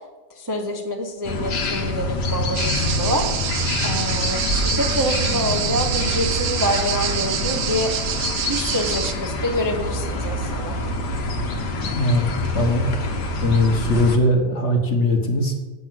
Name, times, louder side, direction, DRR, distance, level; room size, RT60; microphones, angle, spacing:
voice 1, 0.3-3.3 3.8-7.9 8.5-10.8, equal, 15° right, 1 dB, 0.6 m, -26 dB
sound 1, 1.2-14.2, left 2 dB, 65° left, 1.7 m, -26 dB
sound 2, 2.5-9.1, right 9 dB, 75° right, 1.4 m, -27 dB
voice 2, 12.5-12.9 13.4-15.5, left 1 dB, 40° left, 2 dB, 1.5 m, -20 dB
8.1 x 6.9 x 7.6 m, 1.2 s
omnidirectional pair, 2.0 m